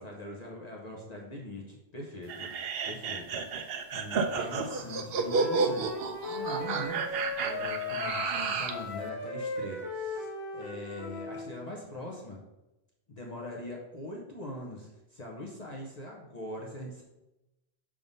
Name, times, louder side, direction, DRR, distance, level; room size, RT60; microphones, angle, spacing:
voice 1, 0.0-12.4 13.1-17.0, left 1 dB, 40° left, -2 dB, 1.0 m, -42 dB
sound 1, 2.3-8.8, right 4 dB, 70° right, 0.8 m, -31 dB
Wind instrument woodwind instrument, 5.2-11.5, left 2 dB, 20° left, 1.8 m, -37 dB
6.6 x 3.7 x 5.4 m, 0.98 s
omnidirectional pair, 1.1 m